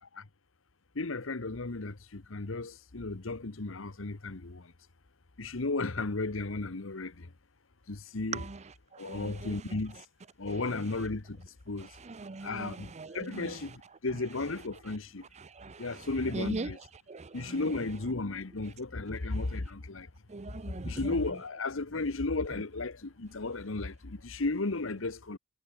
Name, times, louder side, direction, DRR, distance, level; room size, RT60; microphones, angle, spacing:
voice 1, 0.9-4.7 5.4-7.3 7.9-8.4 9.0-10.0 10.4-11.9 12.4-15.2 15.8-16.8 17.3-20.1 20.8-25.4, left 3 dB, 70° left, 1.2 m, -34 dB
voice 2, 8.3-10.0 10.5-11.1 12.0-14.8 15.4-16.9 17.1-18.1 19.3-19.4 20.3-21.6 22.5-22.6, right 3 dB, 35° right, 0.7 m, -42 dB
head